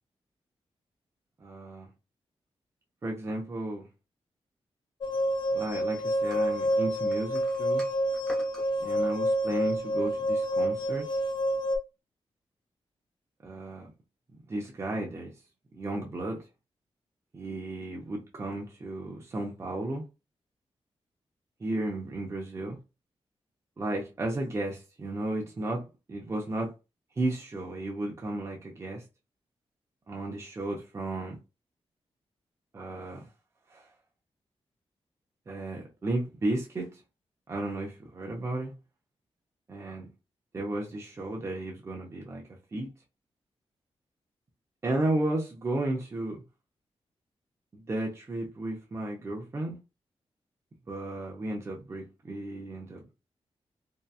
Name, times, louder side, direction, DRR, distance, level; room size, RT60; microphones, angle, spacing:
voice 1, 1.4-1.9 3.0-3.9 5.5-7.8 8.8-11.1 13.4-13.9 14.5-15.3 15.7-16.4 17.3-20.0 21.6-22.8 23.8-26.7 27.2-29.0 30.1-31.4 32.7-33.3 33.7-33.9 35.5-37.0 37.5-38.7 39.7-40.1 40.5-42.4 42.7-42.9 44.8-46.4 47.7-49.8 50.9-53.1, right 1 dB, 25° right, 0.5 m, -33 dB
sound 1, 5.0-11.8, equal, 45° left, 0.4 m, -28 dB
sound 2, 6.3-8.7, equal, 5° left, 0.7 m, -47 dB
2.7 x 2.2 x 2.3 m
wide cardioid pair, 165°, 11 cm